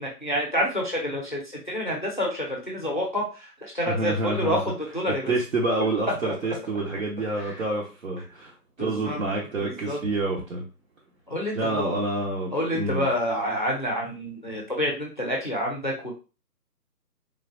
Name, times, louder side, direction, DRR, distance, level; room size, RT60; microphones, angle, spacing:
voice 1, 0.0-5.3 6.2-6.3 7.3-7.5 8.8-9.2 9.6-10.0 11.3-12.0 12.5-16.1, equal, 30° left, -2 dB, 0.5 m, -28 dB
voice 2, 3.9-4.6 5.3-8.5 8.8-10.6 11.6-13.1, right 2 dB, 55° right, -4 dB, 0.9 m, -27 dB
3.3 x 2.5 x 2.5 m, 0.32 s
hypercardioid pair, 160°, 49 cm